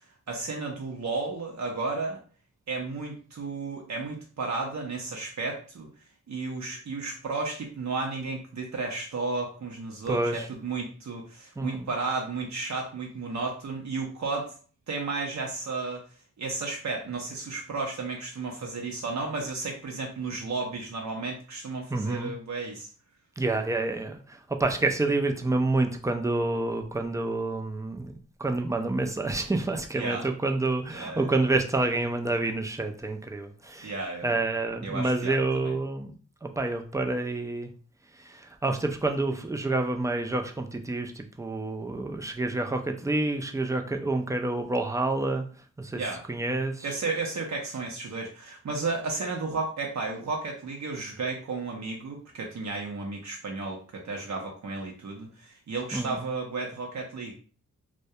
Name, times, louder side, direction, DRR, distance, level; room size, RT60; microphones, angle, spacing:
voice 1, 0.3-2.2 2.7-5.9 6.3-14.5 14.9-16.0 16.4-22.9 29.9-30.3 30.9-31.4 33.8-34.3 34.8-35.7 45.9-46.2 46.8-57.3, right 3 dB, 60° right, 0 dB, 0.6 m, -33 dB
voice 2, 10.1-10.5 11.6-11.9 21.9-22.3 23.4-28.1 28.4-33.9 34.2-36.1 36.4-37.7 38.2-45.4 45.8-46.0 46.3-46.9 55.9-56.2, right 2 dB, 10° right, 5 dB, 0.3 m, -28 dB
2.2 x 2.1 x 2.7 m, 0.40 s
cardioid pair, 70°, 31 cm